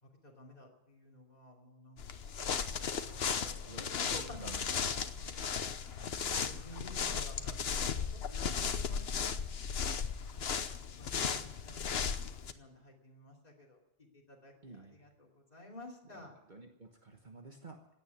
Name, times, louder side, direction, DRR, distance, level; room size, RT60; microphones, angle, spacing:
voice 1, 0.0-5.0 6.3-9.3 10.3-16.3, left 1 dB, 40° left, -2 dB, 3.0 m, -53 dB
sound 1, 2.0-12.5, left 6 dB, 75° left, 1.2 m, -36 dB
voice 2, 3.0-5.5 6.7-6.9 10.2-10.7 14.6-15.1 16.0-17.9, right 3 dB, 50° right, 3 dB, 1.4 m, -53 dB
16.0 x 9.4 x 9.5 m, 0.87 s
omnidirectional pair, 1.0 m